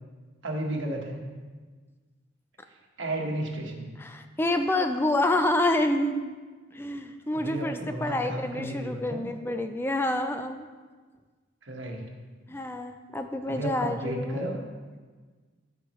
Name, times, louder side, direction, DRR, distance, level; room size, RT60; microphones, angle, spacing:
voice 1, 0.4-1.2 3.0-3.9 7.3-9.2 11.6-12.0 13.5-14.6, right 1 dB, 80° right, 0 dB, 1.3 m, -33 dB
voice 2, 4.0-6.3 6.7-10.7 12.5-14.4, left 1 dB, 10° left, 7 dB, 0.4 m, -28 dB
13.5 x 5.1 x 3.1 m, 1.4 s
head